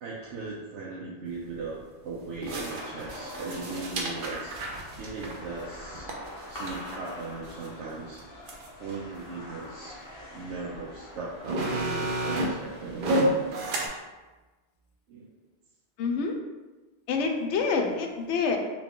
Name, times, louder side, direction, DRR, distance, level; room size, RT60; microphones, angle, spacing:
voice 1, 0.0-4.6 5.0-6.1 6.5-8.2 8.8-10.0 10.3-13.2 15.1-15.3, right 4 dB, 85° right, -5 dB, 0.9 m, -38 dB
sound 1, 1.3-1.4 2.4-7.7 8.2-8.3 8.5-9.0 9.7-9.8 10.7-10.8 11.2-13.9, right 1 dB, 55° right, 0.7 m, -31 dB
sound 2, 2.6-13.5, left 1 dB, 20° left, 0.7 m, -45 dB
voice 2, 16.0-16.4 17.1-18.6, left 4 dB, 80° left, 3 dB, 0.9 m, -27 dB
3.8 x 2.3 x 3.6 m, 1.2 s
omnidirectional pair, 1.2 m